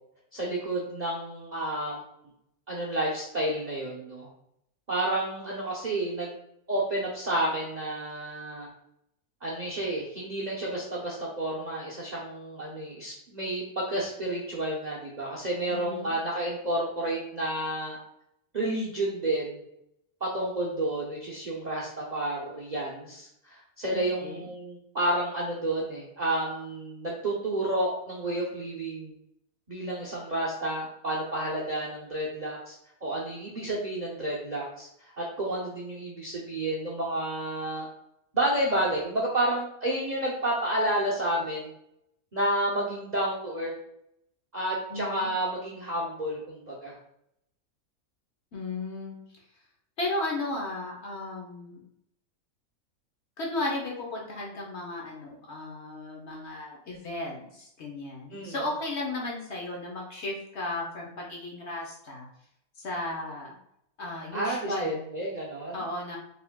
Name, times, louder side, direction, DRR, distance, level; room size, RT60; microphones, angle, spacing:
voice 1, 0.3-2.0 2.7-4.3 4.9-6.3 6.7-8.7 9.4-18.0 18.5-19.6 20.2-29.1 29.7-32.7 33.0-34.9 35.2-37.9 38.3-41.7 42.3-43.7 44.5-46.9 58.3-58.6 64.3-65.8, right 1 dB, 45° right, -4 dB, 0.5 m, -30 dB
voice 2, 15.7-16.1 23.9-24.5 44.9-45.3 48.5-49.2 50.0-51.9 53.4-62.3 62.8-63.5 64.0-65.0 65.7-66.2, left 2 dB, 55° left, -1 dB, 1.0 m, -35 dB
4.7 x 3.4 x 2.2 m, 0.76 s
omnidirectional pair, 1.6 m